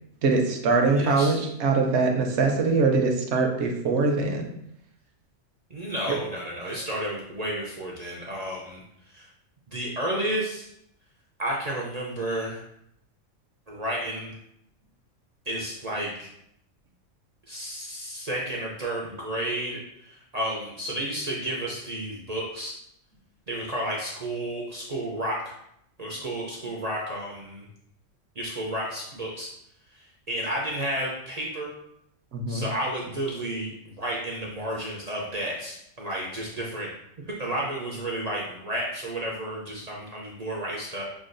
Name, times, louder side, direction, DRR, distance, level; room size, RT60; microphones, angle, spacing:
voice 1, 0.2-4.5 32.3-32.6, right 3 dB, 65° right, 2 dB, 0.9 m, -23 dB
voice 2, 0.9-1.4 5.7-9.3 9.7-10.7 11.4-12.6 13.7-14.4 15.5-16.3 17.5-22.8 23.5-25.6 26.0-27.7 28.4-29.5 29.9-31.7 32.5-36.9 37.4-41.0, right 1 dB, 45° right, -3 dB, 0.5 m, -32 dB
6.0 x 2.3 x 2.5 m, 0.75 s
omnidirectional pair, 1.3 m